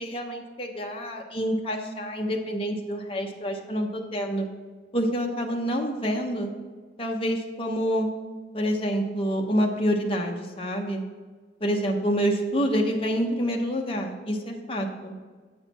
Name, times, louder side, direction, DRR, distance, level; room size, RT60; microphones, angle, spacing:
voice 1, 0.0-4.5 4.9-6.5 7.0-8.1 8.5-11.0 11.6-15.1, equal, 30° left, 1 dB, 0.9 m, -27 dB
8.0 x 6.5 x 4.3 m, 1.4 s
head